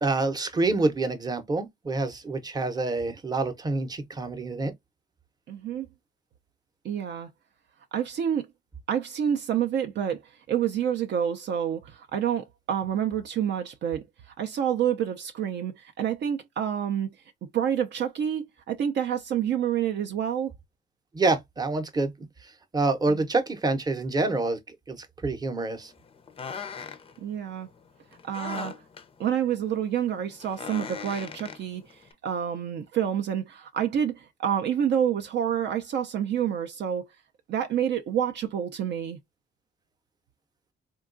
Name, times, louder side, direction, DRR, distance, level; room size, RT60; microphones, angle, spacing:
voice 1, 0.0-4.7 21.1-22.1 22.7-24.6 24.9-25.9, right 3 dB, 20° right, 0.7 m, -27 dB
voice 2, 5.5-5.9 6.8-7.3 7.9-8.5 8.9-14.0 14.4-17.1 17.5-20.5 23.1-23.2 27.2-27.7 28.2-28.7 29.2-37.1 37.5-39.2, right 9 dB, 60° right, 0.5 m, -28 dB
sound 1, 25.6-32.1, left 6 dB, 30° left, 0.4 m, -41 dB
3.7 x 2.2 x 2.4 m
cardioid pair, 90°, 20 cm